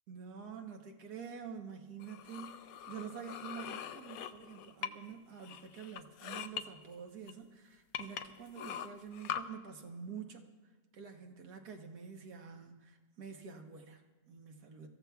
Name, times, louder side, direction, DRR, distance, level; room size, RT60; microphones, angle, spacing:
voice 1, 0.1-10.5 10.9-14.9, right 6 dB, 70° right, 3 dB, 1.6 m, -47 dB
sound 1, 2.0-5.1 5.4-6.6 7.3-7.4 7.9-9.4, left 9 dB, 70° left, 0.9 m, -42 dB
25.0 x 14.5 x 2.3 m, 1.3 s
omnidirectional pair, 1.8 m